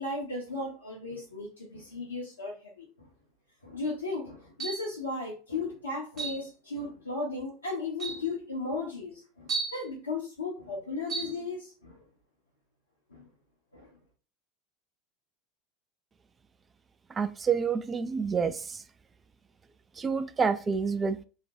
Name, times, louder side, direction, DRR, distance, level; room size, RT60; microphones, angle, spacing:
voice 1, 0.0-3.1 3.6-12.0 13.1-13.2 13.7-13.9, left 3 dB, 85° left, 0.7 m, -36 dB
sound 1, 4.6-5.0 6.2-6.5 7.4-7.5 8.0-8.3 9.5-9.8 11.1-11.4, right 4 dB, 40° right, 1.2 m, -34 dB
voice 2, 17.2-18.8 20.0-21.2, right 5 dB, 25° right, 0.3 m, -28 dB
3.2 x 2.1 x 2.8 m
figure-of-eight pair, 80°, 0 cm